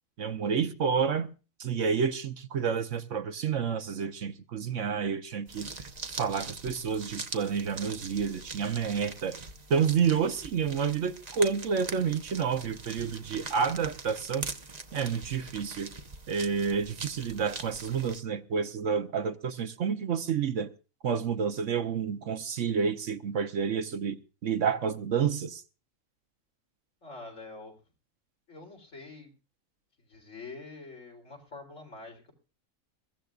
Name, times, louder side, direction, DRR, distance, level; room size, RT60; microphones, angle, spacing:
voice 1, 0.2-1.3 1.6-5.7 6.2-9.4 9.7-14.5 14.9-15.9 16.3-20.7 21.0-25.6, right 6 dB, 65° right, 1.2 m, -29 dB
sound 1, 5.5-18.2, right 4 dB, 35° right, 1.0 m, -42 dB
voice 2, 27.0-27.8 28.5-29.3 30.0-32.3, left 3 dB, 65° left, 3.9 m, -46 dB
22.5 x 14.5 x 2.4 m
omnidirectional pair, 1.4 m